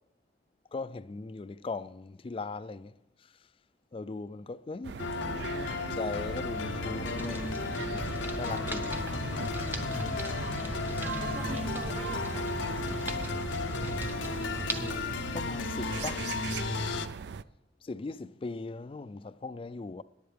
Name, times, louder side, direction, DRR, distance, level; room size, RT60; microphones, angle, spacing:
voice 1, 0.7-3.0 3.9-5.0 5.5-7.5 8.3-9.0 15.3-16.3 17.8-20.0, left 3 dB, 30° left, 0.3 m, -39 dB
sound 1, 4.8-17.4, right 6 dB, 60° right, 0.4 m, -40 dB
sound 2, 5.0-17.1, left 4 dB, 85° left, 0.7 m, -34 dB
sound 3, 7.0-15.0, right 1 dB, 10° right, 0.8 m, -39 dB
voice 2, 10.9-13.1, right 2 dB, 35° right, 1.1 m, -45 dB
22.0 x 10.5 x 3.4 m
head